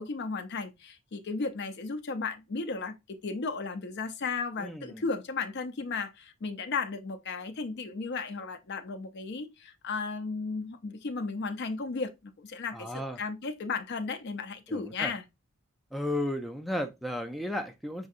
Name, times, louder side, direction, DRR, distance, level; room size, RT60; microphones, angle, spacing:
voice 1, 0.0-15.2, left 4 dB, 55° left, 0.5 m, -35 dB
voice 2, 4.6-5.0 12.7-13.2 14.7-15.1 15.9-18.1, left 1 dB, ahead, 0.3 m, -34 dB
6.2 x 2.7 x 2.4 m
head